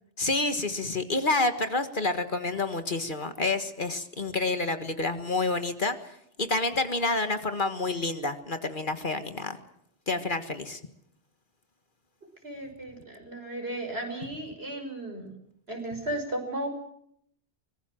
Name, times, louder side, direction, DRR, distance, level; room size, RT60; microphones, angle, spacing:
voice 1, 0.2-6.0 6.4-9.6 10.1-10.8, left 3 dB, 45° left, 8 dB, 1.8 m, -28 dB
voice 2, 12.4-15.3 15.7-16.7, right 1 dB, 65° right, 3 dB, 5.8 m, -35 dB
24.5 x 21.0 x 7.6 m, 0.73 s
omnidirectional pair, 1.1 m